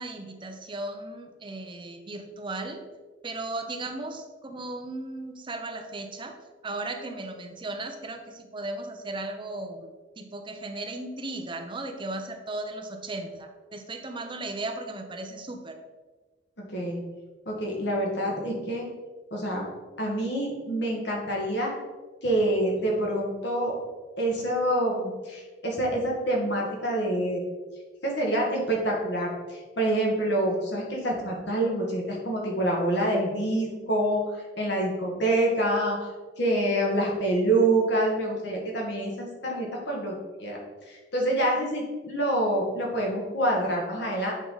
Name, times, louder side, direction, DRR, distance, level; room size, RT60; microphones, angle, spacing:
voice 1, 0.0-2.9 3.2-6.3 6.6-15.8, right 2 dB, 30° right, 5 dB, 0.7 m, -36 dB
voice 2, 16.6-17.0 17.5-18.9 19.3-19.6 20.0-21.7 22.2-23.7 24.2-27.4 28.1-36.1 36.4-40.1 40.4-40.6 40.9-44.3, right 1 dB, 70° left, -2 dB, 1.9 m, -26 dB
8.2 x 4.7 x 4.0 m, 1.3 s
head